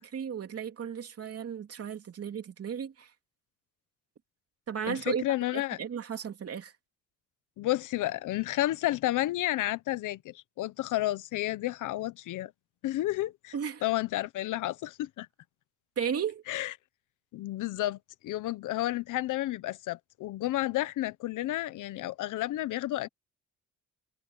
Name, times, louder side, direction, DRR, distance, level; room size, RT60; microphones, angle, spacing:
voice 1, 0.1-3.1 4.7-5.2 5.5-6.7 13.5-13.8 16.0-16.4, right 7 dB, 50° right, 3.2 m, -34 dB
voice 2, 4.9-5.8 7.6-12.5 12.8-13.5 13.8-15.3 16.5-16.7 17.3-23.1, left 15 dB, 85° left, 1.1 m, -31 dB
cardioid pair, 90°, 30 cm